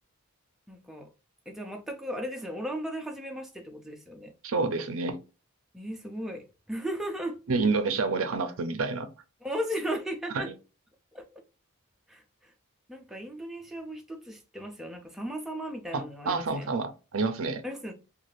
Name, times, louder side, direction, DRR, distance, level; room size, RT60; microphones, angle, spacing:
voice 1, 0.7-1.1 1.5-4.3 5.7-7.4 9.4-10.5 11.1-11.3 12.1-12.5 12.9-16.7 17.6-17.9, equal, ahead, 0.3 m, -36 dB
voice 2, 4.4-5.2 7.5-9.1 10.3-10.4 15.9-17.6, right 4 dB, 65° right, 0.5 m, -28 dB
2.5 x 2.3 x 3.1 m
head